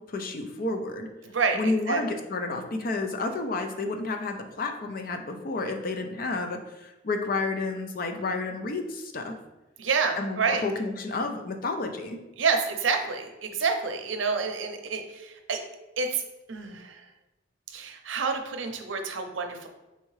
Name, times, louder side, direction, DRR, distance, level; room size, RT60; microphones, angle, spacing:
voice 1, 0.1-1.1 1.5-9.3 10.2-12.2, left 3 dB, 50° left, 5 dB, 0.5 m, -31 dB
voice 2, 1.3-2.0 9.8-10.6 12.4-15.6 16.0-16.2 16.5-17.0 17.7-19.7, right 5 dB, 80° right, 5 dB, 0.6 m, -28 dB
4.2 x 3.5 x 3.2 m, 1.0 s
head